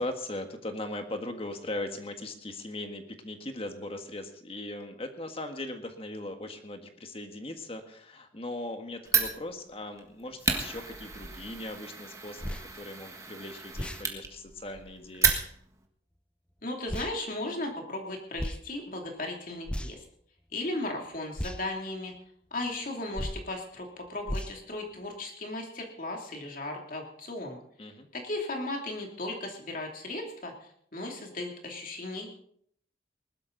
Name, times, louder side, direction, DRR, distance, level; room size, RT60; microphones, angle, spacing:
voice 1, 0.0-15.3 27.8-28.1, left 1 dB, 30° left, 6 dB, 1.6 m, -39 dB
Fire, 9.0-15.8, right 5 dB, 15° right, 1.6 m, -32 dB
sound 1, 12.4-12.7 13.7-14.0 15.2-15.4 16.9-17.1 18.4-18.6 19.6-20.1 21.4-21.6 23.1-23.5 24.3-24.6, equal, 5° left, 0.6 m, -34 dB
voice 2, 16.6-20.0 20.5-22.1 22.5-27.6 28.1-30.5 30.9-32.3, left 2 dB, 50° left, 1 dB, 2.9 m, -36 dB
20.0 x 12.5 x 4.0 m, 0.66 s
head